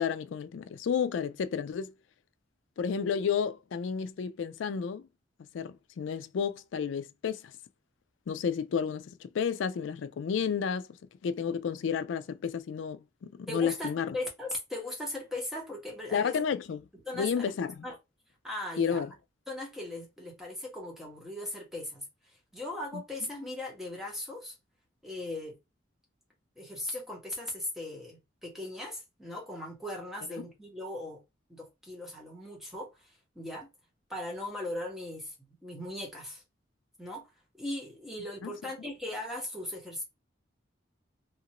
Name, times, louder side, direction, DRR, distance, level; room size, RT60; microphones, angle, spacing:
voice 1, 0.0-1.9 2.8-5.1 5.5-7.5 8.3-10.9 11.2-14.2 16.1-16.9 17.1-17.8 18.8-19.1 22.9-23.0 30.4-30.5 38.4-38.5, left 7 dB, 70° left, 0.3 m, -31 dB
voice 2, 13.5-16.3 17.0-17.5 17.8-18.0 18.4-19.1 19.5-22.1 22.5-24.5 25.0-25.6 26.6-31.2 31.5-33.7 34.1-36.4 37.0-37.3 37.5-40.0, left 1 dB, ahead, 1.1 m, -38 dB
2.9 x 2.5 x 2.9 m
head